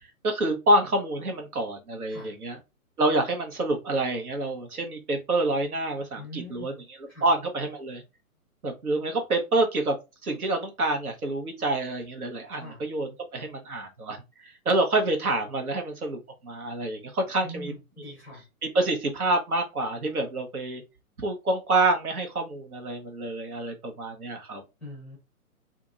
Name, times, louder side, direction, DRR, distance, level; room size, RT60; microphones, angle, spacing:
voice 1, 0.2-2.6 3.0-6.7 7.2-8.0 8.6-10.0 10.2-17.7 18.6-20.8 21.2-24.6, right 2 dB, 85° right, 1.1 m, -27 dB
voice 2, 6.2-6.8 7.1-7.3 12.6-12.8 17.4-18.4 24.8-25.2, equal, 5° left, 0.5 m, -42 dB
2.8 x 2.6 x 2.4 m
figure-of-eight pair, 135°, 44 cm